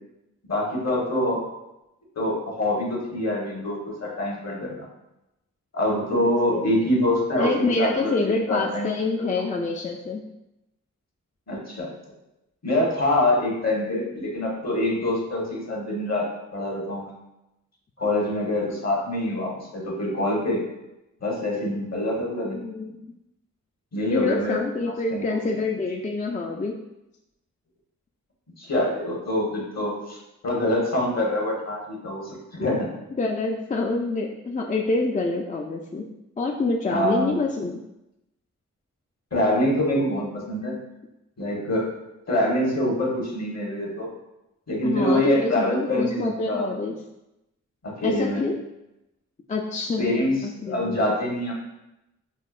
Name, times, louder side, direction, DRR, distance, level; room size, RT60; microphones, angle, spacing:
voice 1, 0.5-1.4 2.2-4.7 5.7-8.9 9.2-9.3 11.5-11.9 12.6-16.3 16.5-17.1 18.0-20.6 21.2-22.6 23.9-25.2 28.6-30.2 30.4-32.9 36.9-37.4 39.3-40.7 41.4-41.9 42.3-44.1 44.7-46.2 46.5-46.7 47.8-48.4 50.0-50.4 50.7-51.5, left 1 dB, 55° left, -3 dB, 1.2 m, -25 dB
voice 2, 7.4-10.2 22.5-23.0 24.1-26.7 32.6-32.7 33.2-36.1 36.4-37.8 44.8-47.0 48.0-48.5 49.5-51.0, left 3 dB, 25° left, 1 dB, 0.4 m, -26 dB
5.5 x 2.0 x 2.4 m, 0.92 s
cardioid pair, 50°, 32 cm